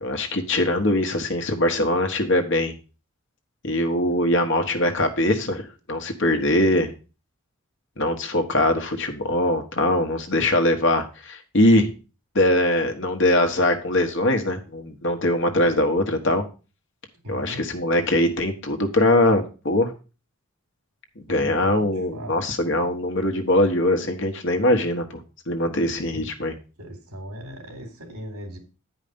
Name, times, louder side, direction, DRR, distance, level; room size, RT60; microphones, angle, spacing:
voice 1, 0.0-2.7 3.6-5.6 5.9-6.9 8.0-11.9 12.3-16.4 17.3-19.9 21.2-25.2 25.5-26.5, left 1 dB, 55° left, 6 dB, 1.3 m, -22 dB
voice 2, 17.2-17.6 21.3-22.3 26.8-28.6, equal, 90° right, 4 dB, 2.9 m, -38 dB
9.8 x 5.1 x 5.2 m, 0.33 s
head